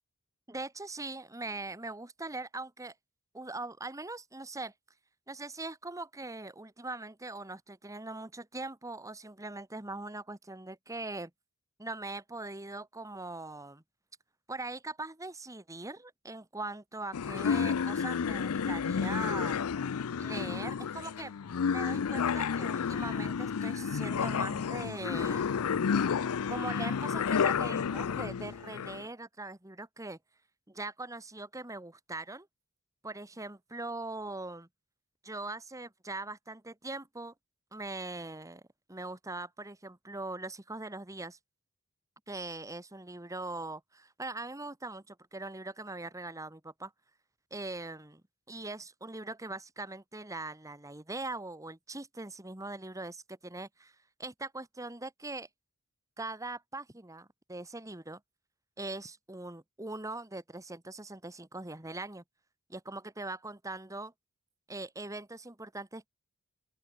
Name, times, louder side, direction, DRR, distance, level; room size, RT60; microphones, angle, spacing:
voice 1, 0.5-2.9 3.3-4.7 5.3-11.3 11.8-13.8 14.5-19.6 20.2-21.3 21.7-25.7 26.5-30.2 30.7-32.5 33.0-34.7 35.2-37.3 37.7-38.6 38.9-41.4 42.3-46.9 47.5-48.2 48.5-55.5 56.2-58.2 58.8-62.2 62.7-64.1 64.7-66.1, right 2 dB, 15° right, 1.5 m, -41 dB
sound 1, 17.1-29.0, left 6 dB, 75° left, 0.5 m, -31 dB
open air
head